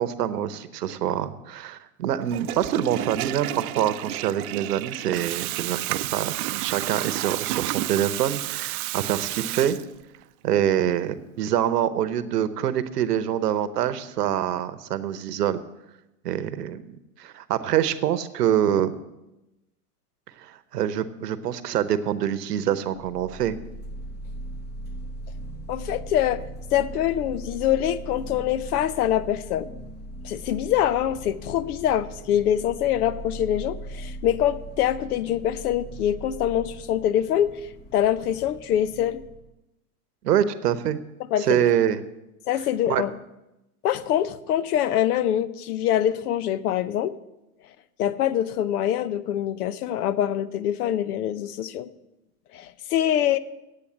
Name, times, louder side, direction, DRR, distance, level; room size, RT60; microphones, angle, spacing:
voice 1, 0.0-9.8 10.4-15.6 16.2-19.0 20.4-23.6 40.2-41.0 41.4-42.0 42.9-43.0, right 10 dB, 90° right, 13 dB, 0.9 m, -25 dB
Water tap faucet / Toilet flush, 2.2-10.2, right 16 dB, 65° right, 0.6 m, -31 dB
sound 1, 22.9-39.5, right 1 dB, 20° left, 1.6 m, -39 dB
voice 2, 25.7-26.4 26.7-29.7 30.2-39.2 41.3-41.7 42.5-43.1 43.8-47.2 48.0-51.9 52.5-53.4, left 11 dB, 70° left, 16 dB, 0.8 m, -24 dB
8.5 x 8.3 x 7.9 m, 0.95 s
hypercardioid pair, 125°, 46 cm